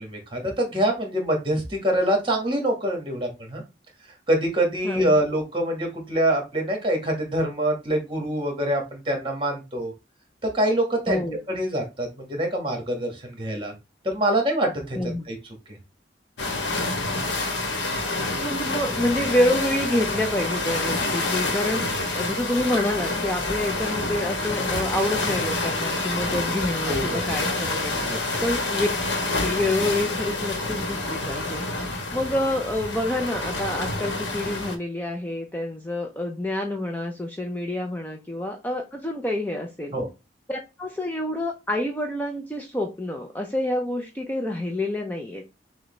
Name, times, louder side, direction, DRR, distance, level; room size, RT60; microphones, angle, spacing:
voice 1, 0.0-3.6 4.3-9.9 10.4-13.7 14.0-15.0 15.3-15.4 26.9-27.4 28.0-28.4 39.9-40.1, right 1 dB, 30° right, 3 dB, 1.4 m, -25 dB
voice 2, 11.1-11.4 15.0-15.2 18.4-28.0 28.4-28.9 29.4-31.6 32.1-39.9 40.5-45.4, left 1 dB, 10° left, 2 dB, 0.5 m, -27 dB
sound 1, 16.4-34.8, left 2 dB, 90° left, 1.0 m, -27 dB
6.2 x 2.2 x 3.1 m, 0.26 s
head